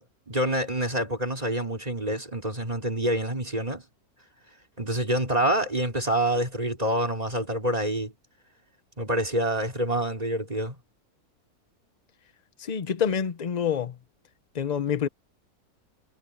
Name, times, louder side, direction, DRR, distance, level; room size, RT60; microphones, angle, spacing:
voice 1, 0.0-3.8 4.8-8.1 9.0-10.8, right 1 dB, 25° right, 3.8 m, -27 dB
voice 2, 12.6-14.0 14.5-15.1, left 7 dB, 40° left, 0.6 m, -27 dB
omnidirectional pair, 1.7 m